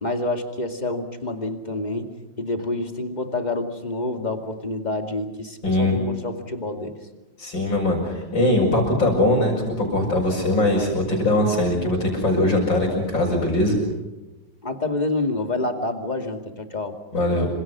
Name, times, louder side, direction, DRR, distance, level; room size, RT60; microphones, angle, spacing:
voice 1, 0.0-2.1 2.4-7.0 14.6-17.0, left 2 dB, 20° left, 5 dB, 2.4 m, -28 dB
voice 2, 5.6-6.0 7.4-13.8 17.1-17.5, left 1 dB, 80° left, -5 dB, 6.8 m, -21 dB
28.0 x 25.5 x 6.2 m, 1.1 s
omnidirectional pair, 2.0 m